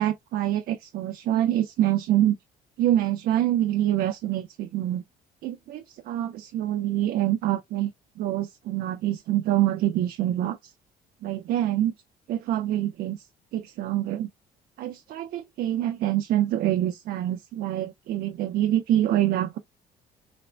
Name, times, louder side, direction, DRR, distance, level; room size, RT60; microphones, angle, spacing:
voice 1, 0.0-2.4 2.8-5.0 5.4-10.7 11.2-11.9 12.3-13.3 13.5-14.3 14.8-19.6, right 12 dB, 60° right, 0.4 m, -26 dB
4.1 x 2.1 x 2.5 m
cardioid pair, 110°, 17 cm